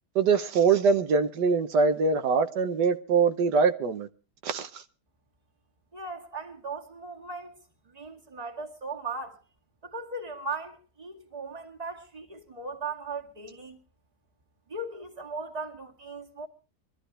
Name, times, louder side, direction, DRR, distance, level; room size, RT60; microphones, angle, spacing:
voice 1, 0.1-4.1 4.4-4.8, right 5 dB, 85° right, 1.6 m, -23 dB
voice 2, 5.9-7.6 7.9-9.4 9.8-13.8 14.7-16.5, right 3 dB, 25° right, 2.1 m, -38 dB
24.0 x 13.5 x 3.3 m
omnidirectional pair, 1.8 m